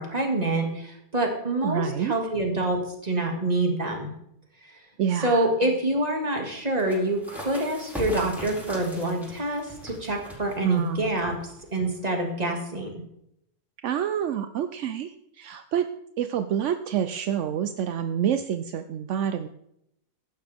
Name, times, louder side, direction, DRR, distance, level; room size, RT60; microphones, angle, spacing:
voice 1, 0.0-4.1 4.6-4.7 5.2-11.4 11.7-13.0, right 1 dB, 25° right, 2 dB, 2.2 m, -26 dB
voice 2, 1.6-2.1 5.0-5.5 10.6-11.1 13.8-15.9 16.2-19.5, right 9 dB, 65° right, 9 dB, 0.7 m, -27 dB
sound 1, 6.7-12.0, equal, ahead, 4.4 m, -40 dB
16.0 x 11.5 x 3.5 m, 0.78 s
omnidirectional pair, 1.8 m